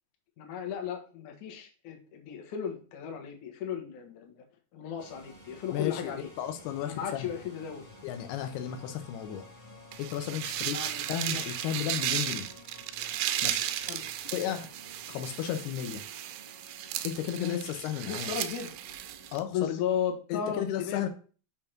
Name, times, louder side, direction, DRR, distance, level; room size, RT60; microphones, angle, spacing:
voice 1, 0.4-4.4 4.7-6.3 6.9-7.8 10.6-11.6 13.9-14.0 17.4-17.6 18.1-18.7 19.5-21.1, left 8 dB, 60° left, 1 dB, 2.3 m, -35 dB
sound 1, 5.0-19.4, left 1 dB, 15° left, 0.6 m, -53 dB
voice 2, 5.7-7.3 8.0-9.5 10.0-10.8 11.1-12.5 13.4-13.6 14.3-14.7 15.1-16.0 17.0-18.3 19.3-19.8 20.3-21.1, left 10 dB, 85° left, 7 dB, 2.8 m, -34 dB
sound 2, 9.9-19.4, right 12 dB, 90° right, 1.9 m, -35 dB
6.5 x 3.6 x 5.9 m, 0.39 s
omnidirectional pair, 4.6 m